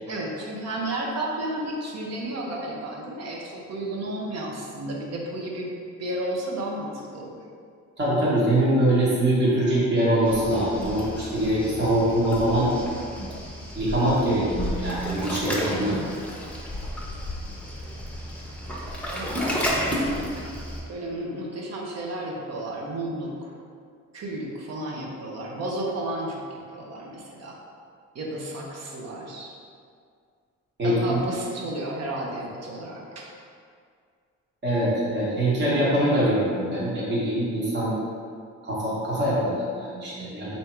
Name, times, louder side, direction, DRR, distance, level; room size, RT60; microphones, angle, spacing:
voice 1, 0.1-5.7 6.0-7.4 19.1-20.3 20.9-23.5 24.1-27.6 28.1-29.5 30.8-33.3, right 1 dB, 55° right, -2 dB, 0.9 m, -32 dB
voice 2, 8.0-12.7 13.7-16.0 30.8-31.2 34.6-37.9 38.6-40.5, right 1 dB, 35° right, -8 dB, 1.4 m, -23 dB
Waves surf, 10.2-20.8, equal, 5° left, 0.8 m, -32 dB
3.5 x 2.8 x 4.4 m, 2.2 s
cardioid pair, 90°, 30 cm